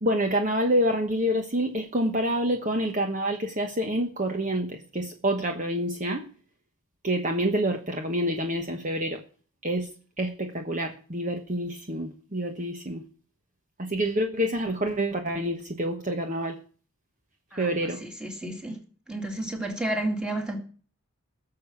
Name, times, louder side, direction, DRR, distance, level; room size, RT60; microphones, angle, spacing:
voice 1, 0.0-6.3 7.0-9.2 9.6-9.9 10.2-13.0 13.8-16.6 17.6-18.0, equal, 35° right, 1.1 m, -27 dB
voice 2, 18.0-18.8 19.1-20.6, right 1 dB, 5° right, 2.4 m, -31 dB
18.0 x 6.8 x 7.1 m
head